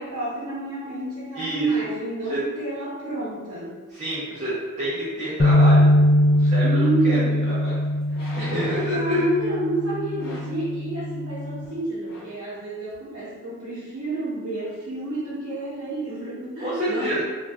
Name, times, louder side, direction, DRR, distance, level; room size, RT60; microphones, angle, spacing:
voice 1, 0.0-3.8 6.6-7.4 8.7-17.2, right 2 dB, 75° right, -10 dB, 0.9 m, -29 dB
voice 2, 1.3-1.7 2.3-2.4 3.9-7.2 7.5-7.8 8.4-9.2 16.6-17.2, equal, 35° right, -9 dB, 0.6 m, -28 dB
sound 1, 5.4-11.6, left 1 dB, 30° left, 0.3 m, -21 dB
sound 2, 8.1-9.1 10.2-10.6 11.6-11.8 12.0-12.4 12.9-13.0, equal, 45° left, 0.7 m, -39 dB
2.5 x 2.2 x 3.3 m, 1.4 s
head